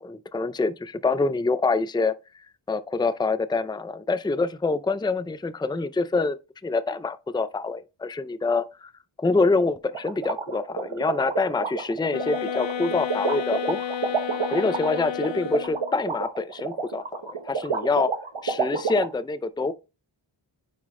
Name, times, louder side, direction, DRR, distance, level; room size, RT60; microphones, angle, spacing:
voice 1, 0.0-2.1 2.7-6.4 6.6-8.9 9.2-13.8 14.5-18.1 18.4-19.7, left 3 dB, 10° left, 0.5 m, -26 dB
sound 1, 9.9-19.0, right 5 dB, 80° right, 1.4 m, -28 dB
sound 2, 12.1-16.0, left 9 dB, 65° left, 0.6 m, -31 dB
9.5 x 3.9 x 3.7 m
wide cardioid pair, 50°, 48 cm